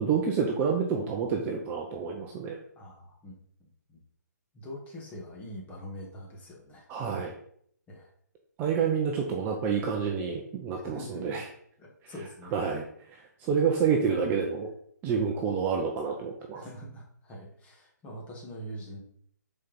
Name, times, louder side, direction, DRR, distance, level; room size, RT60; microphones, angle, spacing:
voice 1, 0.0-2.5 6.9-7.3 8.6-11.4 12.0-12.1 12.5-12.8 13.1-14.7 15.0-16.6, right 6 dB, 20° right, 1 dB, 0.7 m, -28 dB
voice 2, 2.7-4.0 4.5-6.9 7.9-8.1 10.7-11.4 11.8-12.5 16.5-19.0, equal, 15° left, -1 dB, 1.8 m, -44 dB
6.5 x 4.6 x 5.3 m, 0.65 s
figure-of-eight pair, 145°, 10 cm